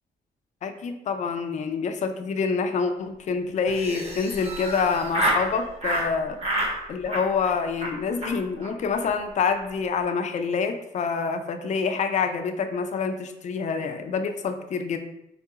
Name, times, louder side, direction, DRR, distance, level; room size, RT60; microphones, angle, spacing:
voice 1, 0.6-6.4 6.9-15.0, left 5 dB, 45° left, 7 dB, 0.4 m, -27 dB
Laughter, 3.7-5.5 5.8-6.1 6.4-6.7 7.1-7.5 7.8-7.9 8.2-8.3 8.6-8.7 8.9-9.1 9.4-9.7, right 1 dB, 35° right, 0.9 m, -28 dB
3.8 x 2.3 x 2.8 m, 0.86 s
cardioid pair, 105°, 17 cm